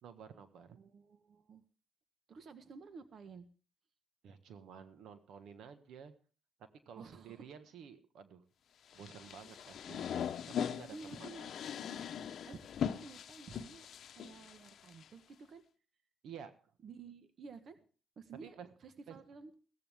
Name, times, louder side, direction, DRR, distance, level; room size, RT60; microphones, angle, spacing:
voice 1, 0.0-0.8 4.2-6.1 6.8-8.4 8.9-10.1 10.5-11.5 16.2-16.5 18.4-18.7 19.1-19.2, right 7 dB, 75° right, 10 dB, 1.4 m, -52 dB
voice 2, 0.8-1.6 2.3-3.5 7.0-7.4 8.9-9.0 9.4-10.0 10.9-11.5 12.2-13.9 14.1-15.6 16.8-17.8 18.2-19.5, right 4 dB, 55° right, 10 dB, 1.3 m, -53 dB
sound 1, 8.9-15.0, left 8 dB, 65° left, 0.8 m, -40 dB
16.0 x 14.0 x 3.6 m, 0.38 s
cardioid pair, 90°, 0 cm